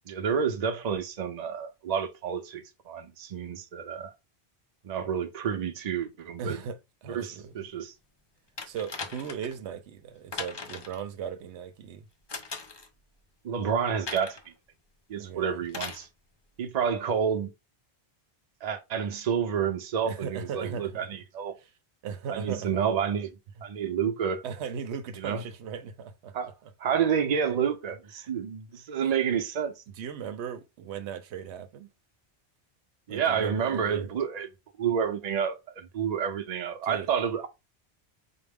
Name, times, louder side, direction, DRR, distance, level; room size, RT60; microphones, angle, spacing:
voice 1, 0.1-4.1 4.8-6.6 7.1-7.9 13.4-14.4 15.1-16.1 16.6-17.5 18.6-21.5 22.3-23.3 23.6-24.4 25.2-25.4 26.3-26.5 26.8-29.7 33.1-34.5 34.8-37.5, right 7 dB, 45° right, 0.6 m, -29 dB
voice 2, 6.4-7.5 8.6-12.1 15.2-15.6 20.1-21.1 21.6-21.7 22.0-22.8 24.4-26.3 26.6-26.7 28.2-28.3 30.0-31.9 33.1-34.1 36.8-37.1, right 7 dB, 85° right, 0.9 m, -37 dB
sound 1, 8.6-9.6 10.3-11.0 12.3-12.9 14.1-14.5 15.7-16.1 17.1-17.2, left 4 dB, 40° left, 0.4 m, -38 dB
4.5 x 2.0 x 3.5 m
omnidirectional pair, 1.1 m